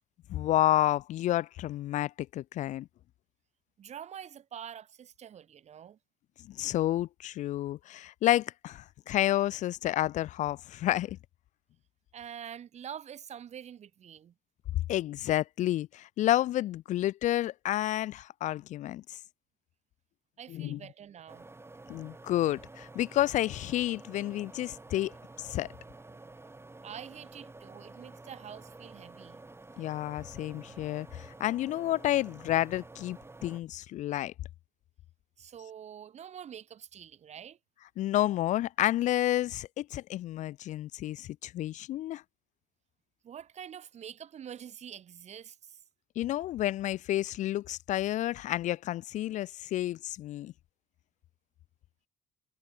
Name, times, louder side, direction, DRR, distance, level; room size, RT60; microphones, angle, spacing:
voice 1, 0.3-2.9 6.4-11.2 14.9-19.2 20.5-20.8 21.9-25.1 25.4-25.7 29.8-34.3 38.0-42.2 46.2-50.5, left 14 dB, 60° left, 0.4 m, -30 dB
voice 2, 3.8-6.0 12.1-14.3 20.4-21.5 26.8-29.4 35.4-37.6 43.2-45.8, right 9 dB, 50° right, 1.7 m, -46 dB
sound 1, 21.3-33.6, right 2 dB, 15° right, 4.0 m, -50 dB
supercardioid pair, 75°, 14 cm